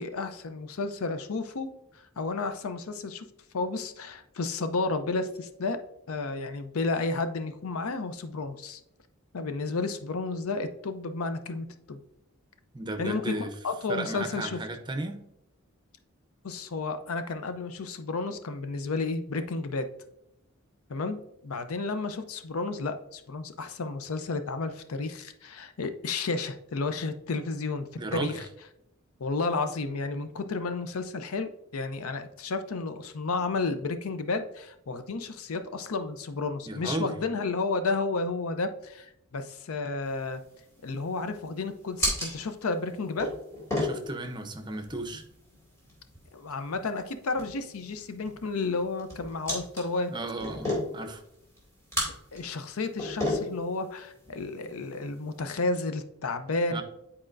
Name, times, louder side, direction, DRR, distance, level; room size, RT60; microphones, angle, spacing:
voice 1, 0.0-1.7 2.2-3.3 3.5-5.8 6.1-8.8 9.3-12.0 13.0-13.4 13.6-14.6 16.4-19.9 20.9-21.2 21.4-28.5 29.2-40.4 40.8-43.3 46.3-50.1 52.3-56.8, left 3 dB, 85° left, 9 dB, 0.6 m, -32 dB
voice 2, 12.7-13.5 13.9-15.3 28.0-28.5 36.7-37.1 43.8-45.2 50.1-51.2 56.7-56.8, right 2 dB, 20° right, 5 dB, 0.6 m, -34 dB
sound 1, 40.0-55.4, left 1 dB, 15° left, 2.2 m, -36 dB
9.7 x 4.3 x 2.5 m, 0.80 s
head